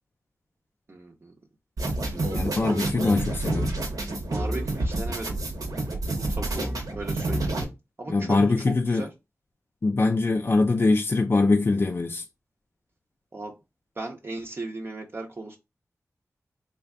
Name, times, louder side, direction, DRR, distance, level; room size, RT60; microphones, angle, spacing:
voice 1, 0.9-1.3 3.1-3.2 4.3-5.4 6.1-7.6 8.0-8.5 8.9-9.1 13.3-13.5 14.0-15.6, right 2 dB, 40° right, 0.6 m, -37 dB
sound 1, 1.8-7.6, right 2 dB, 90° right, 0.8 m, -28 dB
voice 2, 2.3-3.7 8.1-9.1 9.8-12.2, left 3 dB, 40° left, 0.3 m, -23 dB
3.3 x 2.2 x 3.5 m
wide cardioid pair, 75°, 6 cm